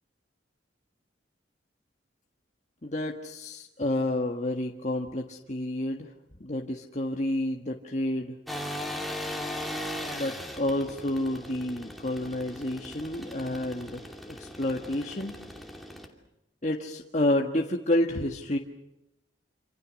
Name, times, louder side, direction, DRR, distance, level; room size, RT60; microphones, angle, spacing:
voice 1, 2.8-6.1 6.4-8.3 10.1-15.3 16.6-18.6, left 1 dB, 35° left, 1 dB, 1.5 m, -30 dB
sound 1, 8.5-16.1, left 1 dB, ahead, 2.8 m, -38 dB
27.5 x 27.5 x 6.4 m, 0.88 s
head